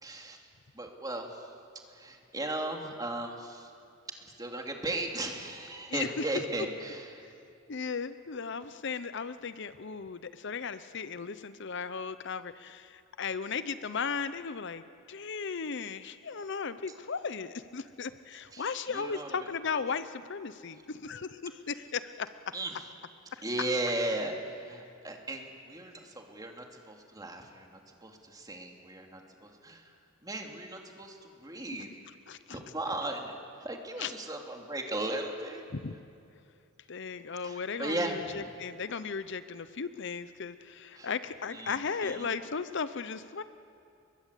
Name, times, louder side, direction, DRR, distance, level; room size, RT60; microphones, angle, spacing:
voice 1, 0.0-0.5 0.7-1.5 1.9-3.7 4.4-7.3 18.5-19.5 22.5-22.9 23.4-29.9 30.2-31.9 32.5-33.3 33.6-35.6 37.4-38.6 40.9-41.1 41.5-41.8 42.0-42.3, right 1 dB, 20° right, 2 dB, 2.9 m, -37 dB
voice 2, 5.9-6.2 7.7-22.3 23.3-23.4 32.3-32.6 34.0-34.1 35.7-35.9 36.9-43.4, left 5 dB, 60° left, 13 dB, 0.7 m, -36 dB
29.5 x 22.5 x 8.4 m, 2.5 s
head